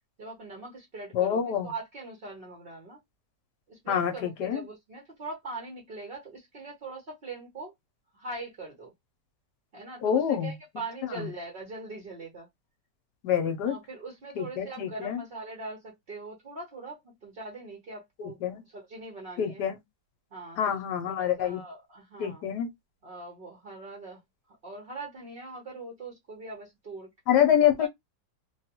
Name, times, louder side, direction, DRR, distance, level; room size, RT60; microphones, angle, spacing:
voice 1, 0.2-3.0 3.7-7.7 8.1-8.9 9.7-12.5 13.6-19.6 20.3-20.8 21.1-22.4 23.0-24.2 24.6-27.4 27.8-27.9, right 3 dB, 45° right, 0.7 m, -42 dB
voice 2, 1.1-1.7 3.9-4.6 10.0-10.5 11.1-11.3 13.2-13.8 14.4-15.2 18.2-18.6 19.4-19.8 20.6-21.6 22.2-22.7 27.3-27.9, left 9 dB, 70° left, 1.2 m, -26 dB
3.2 x 2.3 x 2.8 m
omnidirectional pair, 2.0 m